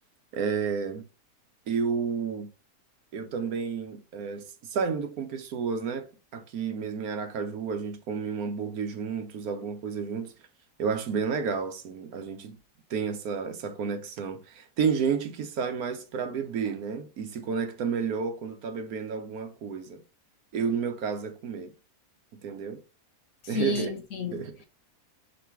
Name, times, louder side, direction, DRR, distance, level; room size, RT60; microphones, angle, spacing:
voice 1, 0.3-1.0 1.7-2.5 3.1-10.3 10.8-12.6 12.9-20.0 20.5-21.7 22.4-22.8 23.5-23.9 24.3-24.6, right 6 dB, 70° right, 1.2 m, -31 dB
voice 2, 23.5-24.7, left 6 dB, 65° left, 1.1 m, -32 dB
3.8 x 3.1 x 4.4 m
omnidirectional pair, 1.7 m